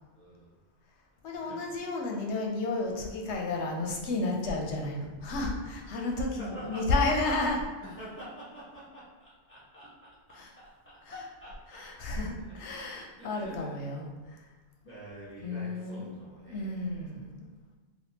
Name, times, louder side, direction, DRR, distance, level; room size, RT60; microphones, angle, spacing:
voice 1, 0.1-0.5 1.4-1.7 6.4-7.6 7.8-11.8 12.4-12.8 13.1-13.8 14.8-16.9, right 1 dB, 10° left, -10 dB, 1.0 m, -47 dB
voice 2, 1.2-7.6 10.3-10.5 11.7-14.1 14.3-14.4 15.4-16.1 16.5-17.5, left 2 dB, 80° left, 0 dB, 0.9 m, -32 dB
3.4 x 2.5 x 2.8 m, 1.3 s
omnidirectional pair, 1.2 m